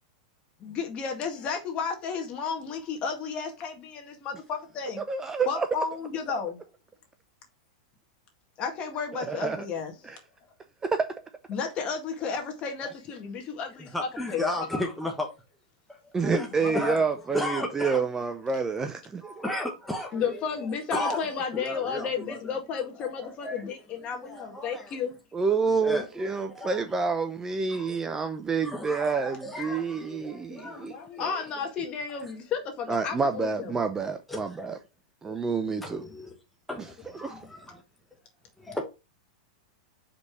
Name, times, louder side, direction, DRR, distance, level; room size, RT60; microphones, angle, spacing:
voice 1, 0.6-5.0 5.5-6.6 8.6-10.2 11.5-14.4 14.7-14.8 16.6-17.0 20.1-25.1 30.5-33.8 35.7-35.8 36.1-36.2 37.3-37.5, left 6 dB, 35° left, 2.0 m, -33 dB
voice 2, 5.1-5.7 9.3-9.6 10.8-11.1 16.1-19.4 25.3-30.9 31.3-31.4 32.9-34.8 35.2-36.0 36.8-36.9 37.2-37.3, right 5 dB, 15° right, 0.6 m, -28 dB
voice 3, 13.8-15.3 16.0-17.1 17.3-18.0 19.2-20.2 20.9-21.2 21.5-22.5 23.4-23.7 24.2-25.0 25.7-26.9 27.7-28.0 28.6-30.9 31.2-31.5 34.3-34.8 35.2-35.4 35.8-36.3 36.7-37.8 38.6-38.8, left 1 dB, ahead, 1.0 m, -34 dB
5.2 x 4.1 x 4.7 m
supercardioid pair, 135°, 4 cm